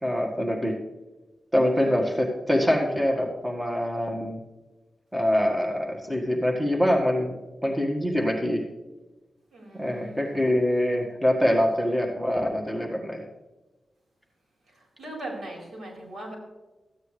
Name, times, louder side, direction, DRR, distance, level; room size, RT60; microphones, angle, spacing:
voice 1, 0.0-0.8 1.5-4.4 5.1-7.3 7.6-8.6 9.7-13.2, equal, 10° right, 1 dB, 1.7 m, -24 dB
voice 2, 9.5-10.3 14.7-16.4, right 1 dB, 80° right, -1 dB, 4.0 m, -39 dB
14.0 x 9.3 x 3.3 m, 1.1 s
cardioid pair, 70°, 0 cm